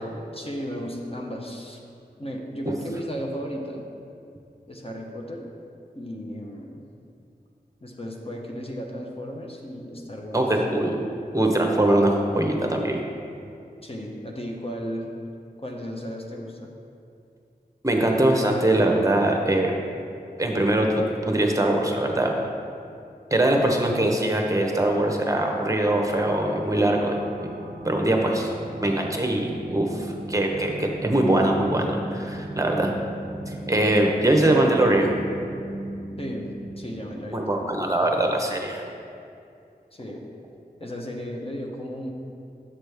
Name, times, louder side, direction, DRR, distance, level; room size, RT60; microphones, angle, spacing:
voice 1, 0.3-1.8 2.2-3.8 4.7-5.5 5.9-6.8 7.8-10.4 13.8-15.1 15.6-16.7 23.5-23.7 36.2-37.6 39.9-40.2 40.8-42.1, equal, 35° left, 0 dB, 0.8 m, -35 dB
voice 2, 10.3-10.9 11.3-13.0 17.8-19.7 20.4-22.3 23.3-27.2 27.4-27.5 27.8-28.5 28.8-32.9 33.5-35.1 37.3-38.8, right 1 dB, 20° right, 1 dB, 0.9 m, -22 dB
sound 1, 26.0-37.7, right 1 dB, 60° right, 0.6 m, -37 dB
7.4 x 6.1 x 3.4 m, 2.5 s
wide cardioid pair, 55°, 17 cm